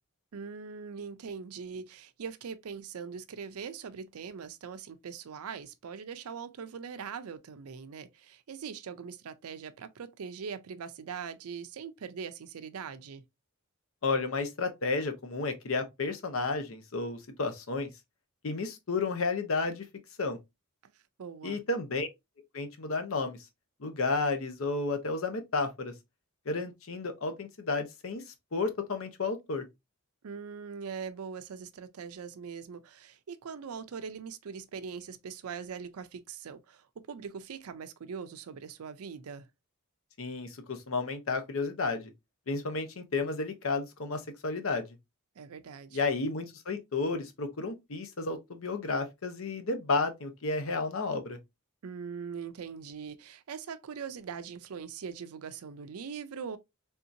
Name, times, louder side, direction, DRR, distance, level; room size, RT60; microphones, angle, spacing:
voice 1, 0.3-13.2 20.8-20.9 21.2-21.6 30.2-39.5 45.4-46.0 51.8-56.6, right 6 dB, 85° right, 0.5 m, -41 dB
voice 2, 14.0-17.9 18.4-19.8 20.2-20.4 21.4-22.1 22.5-23.4 23.8-25.9 26.5-29.6 40.2-42.1 42.5-44.9 45.9-51.4, left 3 dB, 65° left, 0.8 m, -32 dB
3.5 x 2.8 x 2.5 m
head